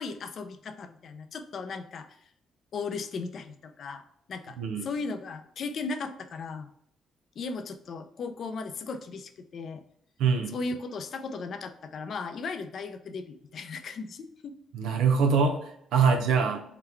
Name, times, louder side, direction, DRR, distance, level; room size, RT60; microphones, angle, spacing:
voice 1, 0.0-2.2 2.7-6.7 7.4-9.8 10.5-14.5 15.9-16.5, left 4 dB, 60° left, 8 dB, 0.4 m, -37 dB
voice 2, 10.2-10.6 14.7-16.6, right 5 dB, 85° right, 4 dB, 0.6 m, -24 dB
3.9 x 2.2 x 4.4 m, 0.70 s
cardioid pair, 90°, 0 cm